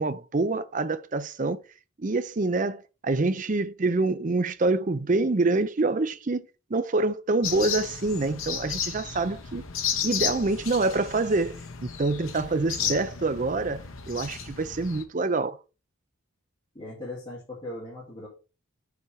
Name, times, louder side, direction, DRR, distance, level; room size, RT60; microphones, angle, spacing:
voice 1, 0.0-1.6 2.0-6.4 6.7-9.6 10.0-15.6, right 3 dB, 35° right, 0.5 m, -26 dB
sound 1, 7.4-15.0, left 8 dB, 75° left, 1.1 m, -33 dB
voice 2, 16.7-18.3, left 1 dB, 25° left, 2.8 m, -39 dB
7.1 x 4.4 x 4.8 m
head